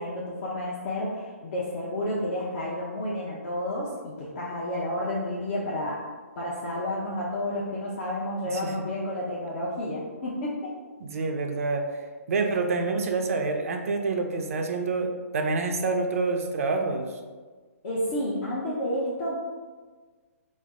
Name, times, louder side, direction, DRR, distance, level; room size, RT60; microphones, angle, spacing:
voice 1, 0.0-6.0 6.4-10.8 17.8-19.3, left 1 dB, 45° left, -6 dB, 0.7 m, -31 dB
voice 2, 11.0-11.9 12.3-17.1, right 3 dB, 65° right, 5 dB, 0.5 m, -27 dB
4.3 x 2.1 x 3.5 m, 1.4 s
hypercardioid pair, 140°, 8 cm